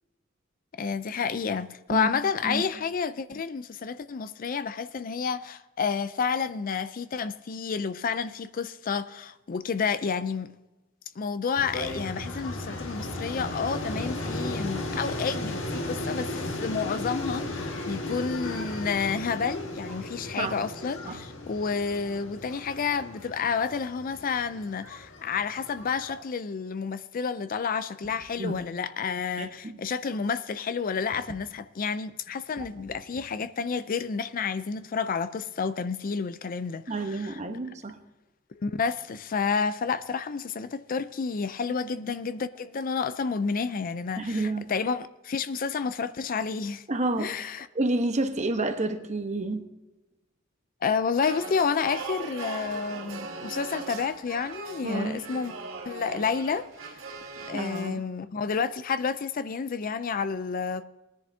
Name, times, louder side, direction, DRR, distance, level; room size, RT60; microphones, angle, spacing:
voice 1, 0.8-10.5 11.2-37.4 38.6-46.8 47.2-47.7 50.8-55.5 55.9-57.0 57.4-60.8, left 5 dB, 45° left, 0.4 m, -30 dB
sound 1, 11.6-26.2, left 1 dB, 70° left, 1.7 m, -35 dB
voice 2, 29.4-29.8 32.6-32.7 33.1-33.2 36.9-38.0 42.0-42.1 44.2-44.7 46.9-47.4 47.7-49.7 54.8-55.2 57.5-58.0, right 2 dB, 35° right, 1.0 m, -29 dB
sound 2, 51.2-57.9, right 4 dB, 75° right, 1.7 m, -39 dB
19.5 x 10.5 x 2.7 m
head